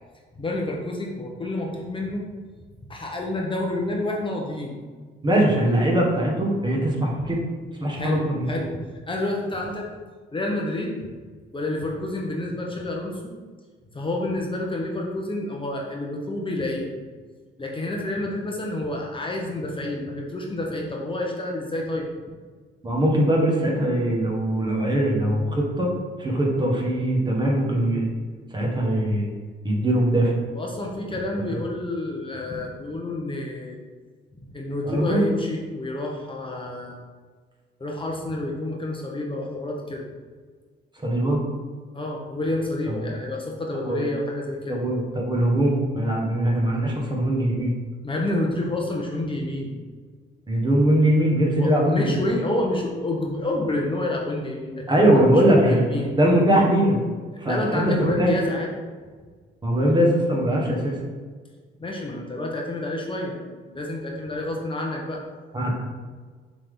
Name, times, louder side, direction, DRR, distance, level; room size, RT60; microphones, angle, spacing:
voice 1, 0.4-2.2 2.9-4.8 8.0-8.7 9.1-9.9 10.3-10.9 11.5-13.3 13.9-16.9 17.6-22.1 30.5-33.8 34.5-37.0 37.8-40.1 41.9-44.8 48.0-49.7 51.6-56.1 57.5-58.8 61.8-65.2, left 1 dB, 25° left, -1 dB, 1.0 m, -29 dB
voice 2, 5.2-7.4 7.8-8.4 22.8-25.9 26.2-28.1 28.5-29.3 29.6-30.3 34.8-35.3 41.0-41.4 42.9-43.1 43.8-44.0 44.7-47.7 50.5-52.1 54.9-55.8 56.1-57.0 57.4-58.3 59.6-61.0 65.5-65.7, right 1 dB, 20° right, -2 dB, 1.5 m, -21 dB
6.7 x 3.8 x 3.7 m, 1.5 s
cardioid pair, 90°, 20 cm